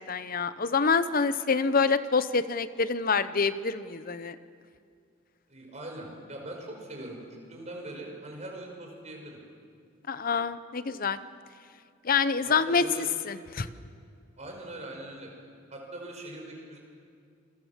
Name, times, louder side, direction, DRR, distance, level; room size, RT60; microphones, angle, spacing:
voice 1, 0.0-4.4 10.1-11.2 12.0-13.7, left 5 dB, 45° left, 13 dB, 0.8 m, -26 dB
voice 2, 5.5-7.2 7.5-9.4 12.4-13.1 14.4-15.3 15.7-16.8, right 1 dB, 35° right, 1 dB, 5.6 m, -41 dB
28.0 x 21.5 x 7.4 m, 2.2 s
head